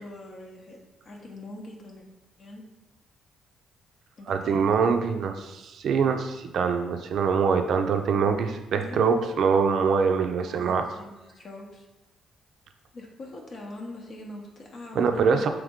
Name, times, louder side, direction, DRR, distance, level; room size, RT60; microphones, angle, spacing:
voice 1, 0.0-2.0 2.4-2.6 4.2-4.7 8.8-9.1 10.4-11.9 12.9-15.5, left 2 dB, 50° left, 0 dB, 0.7 m, -42 dB
voice 2, 4.3-10.9 14.9-15.5, right 5 dB, 65° right, 6 dB, 0.4 m, -24 dB
3.5 x 3.0 x 3.6 m, 1.0 s
cardioid pair, 90°, 0 cm